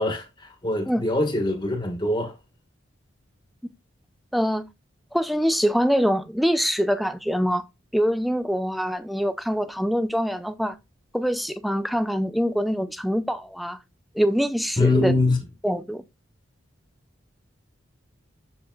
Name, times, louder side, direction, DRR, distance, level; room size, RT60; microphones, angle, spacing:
voice 1, 0.0-2.3 14.8-15.4, left 2 dB, 20° left, 1.6 m, -23 dB
voice 2, 4.3-4.7 5.1-7.6 7.9-10.8 11.1-13.8 14.1-15.1 15.6-16.0, equal, ahead, 0.5 m, -24 dB
7.3 x 7.0 x 2.4 m
head